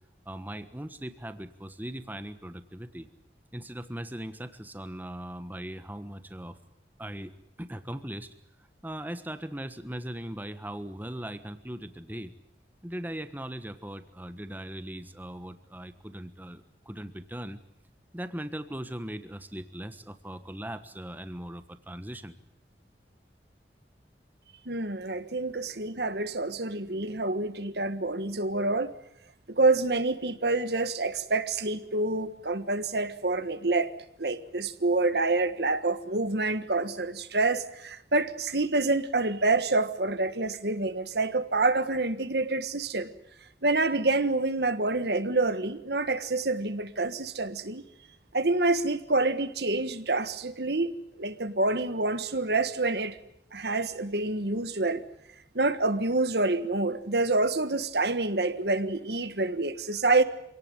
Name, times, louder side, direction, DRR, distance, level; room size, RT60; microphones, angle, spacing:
voice 1, 0.2-3.1 3.5-6.6 7.0-7.3 7.6-8.3 8.6-12.3 12.8-17.6 18.1-22.4, right 1 dB, 10° right, 11 dB, 1.3 m, -39 dB
voice 2, 24.6-28.9 29.6-33.9 34.2-43.1 43.6-47.8 48.3-50.9 51.2-53.2 53.5-55.0 55.5-60.2, right 2 dB, 65° right, 11 dB, 1.5 m, -27 dB
26.5 x 18.0 x 9.9 m, 0.77 s
head